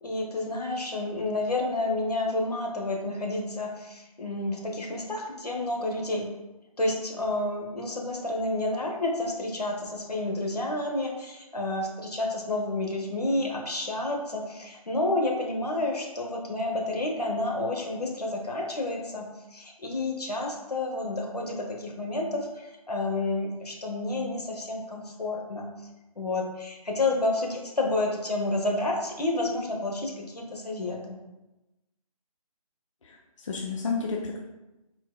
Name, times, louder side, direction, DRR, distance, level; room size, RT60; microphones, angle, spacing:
voice 1, 0.0-6.3 6.8-25.7 26.2-31.2, left 2 dB, 85° left, 1 dB, 1.0 m, -30 dB
voice 2, 33.0-34.4, left 4 dB, 55° left, 0 dB, 0.5 m, -31 dB
4.3 x 3.9 x 2.2 m, 1.0 s
figure-of-eight pair, 150°, 20 cm